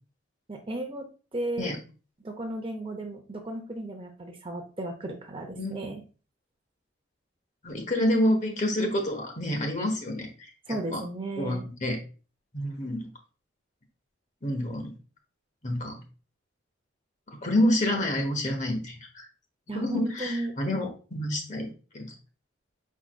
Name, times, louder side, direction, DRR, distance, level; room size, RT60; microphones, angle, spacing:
voice 1, 0.5-1.1 1.3-1.7 2.2-6.0 10.7-11.7 19.7-20.6, right 1 dB, 30° right, 3 dB, 0.6 m, -34 dB
voice 2, 7.6-10.5 10.9-11.0 11.4-12.0 12.5-13.1 14.4-14.9 15.6-16.0 17.4-19.3 19.7-21.7 21.9-22.1, left 1 dB, 40° left, 2 dB, 1.1 m, -28 dB
4.8 x 4.7 x 2.3 m, 0.35 s
head